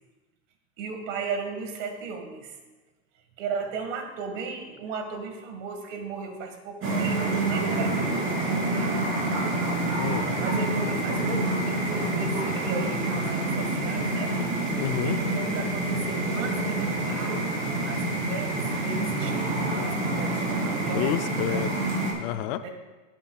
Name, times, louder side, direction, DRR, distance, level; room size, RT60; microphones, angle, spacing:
voice 1, 0.8-2.6 3.4-9.2 10.4-14.4 15.1-17.4 17.9-21.7 22.6-22.7, right 5 dB, 70° right, 4 dB, 2.1 m, -36 dB
sound 1, 6.8-22.1, right 2 dB, 30° right, 3.3 m, -27 dB
voice 2, 10.0-10.3 14.7-15.2 20.9-21.8 22.2-22.6, left 12 dB, 50° left, 11 dB, 0.6 m, -29 dB
16.0 x 8.8 x 2.4 m, 1.2 s
supercardioid pair, 145°, 39 cm